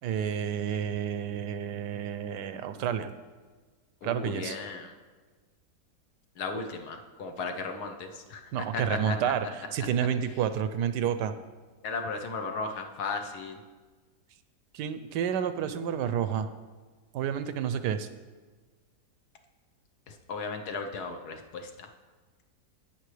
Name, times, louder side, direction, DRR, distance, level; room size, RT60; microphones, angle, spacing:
voice 1, 0.0-3.1 4.0-4.6 8.5-11.3 14.7-16.5 17.1-18.1, right 8 dB, 90° right, 11 dB, 1.2 m, -30 dB
voice 2, 4.0-4.9 6.4-8.4 8.7-9.3 11.8-13.6 20.1-21.9, left 4 dB, 70° left, 5 dB, 1.3 m, -35 dB
17.0 x 6.0 x 3.2 m, 1.4 s
omnidirectional pair, 1.8 m